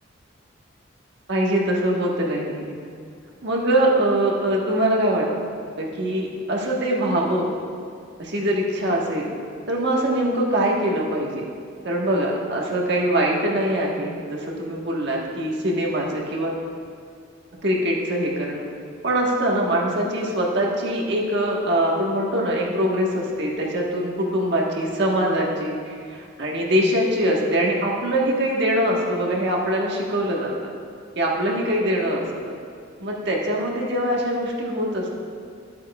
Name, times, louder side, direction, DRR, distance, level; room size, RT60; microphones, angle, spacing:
voice 1, 1.3-2.7 3.4-5.2 5.8-7.5 8.2-9.3 9.7-11.5 11.8-16.6 17.6-18.7 19.0-30.5 31.1-32.6 33.0-35.1, right 1 dB, 60° right, -2 dB, 1.4 m, -23 dB
13.0 x 8.3 x 2.4 m, 2.3 s
head